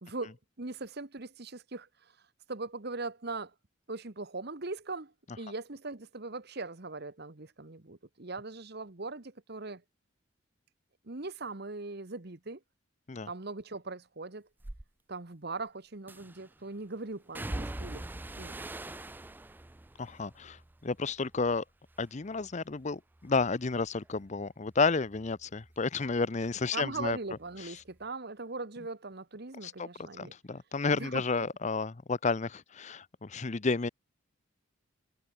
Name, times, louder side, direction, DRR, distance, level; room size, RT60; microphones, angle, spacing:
voice 1, 0.0-1.9 2.5-3.5 3.9-9.8 11.0-12.6 13.3-14.5 15.1-18.0 18.3-18.6 26.7-30.3 30.9-31.5, right 3 dB, 50° right, 1.4 m, -40 dB
sound 1, 14.6-14.8 16.1-16.5 17.3-21.6 21.9-22.5 22.9-26.2 26.5-27.6 27.9-28.0, right 1 dB, 10° right, 0.3 m, -44 dB
voice 2, 20.0-21.6 22.0-27.2 27.6-27.7 29.6-29.9 30.2-33.9, left 4 dB, 35° left, 0.6 m, -31 dB
head